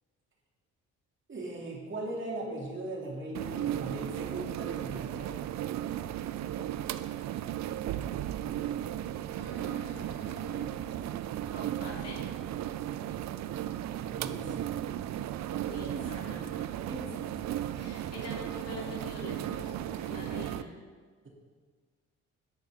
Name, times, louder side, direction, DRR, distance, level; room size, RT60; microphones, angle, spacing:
voice 1, 1.3-5.5 14.1-14.7 15.7-16.3 16.8-17.4, right 2 dB, 40° right, -2 dB, 2.6 m, -39 dB
sound 1, 3.3-20.6, right 11 dB, 65° right, 0.5 m, -35 dB
voice 2, 9.3-10.7 11.5-12.3 15.6-17.0 17.8-20.7, left 3 dB, 55° left, -4 dB, 3.5 m, -45 dB
11.0 x 10.0 x 3.6 m, 1.5 s
cardioid pair, 90°, 30 cm